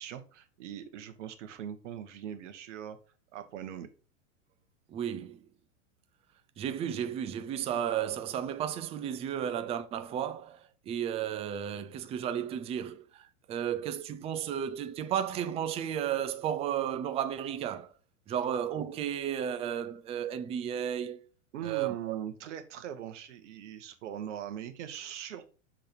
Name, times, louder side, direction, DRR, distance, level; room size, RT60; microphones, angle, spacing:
voice 1, 0.0-3.0 3.3-3.9 21.5-25.6, right 9 dB, 65° right, 1.3 m, -41 dB
voice 2, 4.9-5.4 6.6-17.9 18.3-21.2 21.6-22.2, right 9 dB, 15° right, 0.4 m, -33 dB
6.6 x 3.8 x 4.4 m
hypercardioid pair, 120°, 38 cm